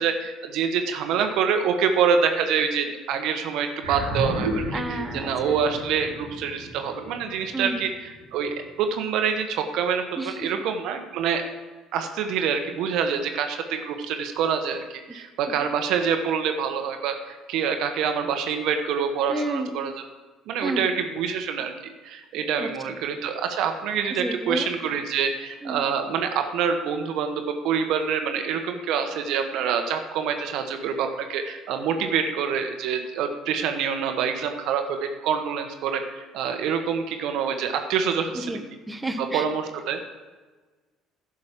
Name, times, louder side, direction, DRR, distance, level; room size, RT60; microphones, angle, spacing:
voice 1, 0.0-11.5 11.9-14.8 15.1-20.0 20.5-21.7 22.0-38.6 39.2-40.0, right 7 dB, 65° right, 6 dB, 1.1 m, -26 dB
sound 1, 3.8-8.4, right 1 dB, 90° right, 1.7 m, -32 dB
voice 2, 4.7-5.3 7.5-7.8 10.2-10.4 15.1-15.2 19.3-19.7 20.6-20.8 22.6-22.7 24.2-24.7 25.6-25.8 38.3-39.4, right 1 dB, 15° right, 6 dB, 1.2 m, -30 dB
11.0 x 6.3 x 7.4 m, 1.3 s
hypercardioid pair, 60°, 0 cm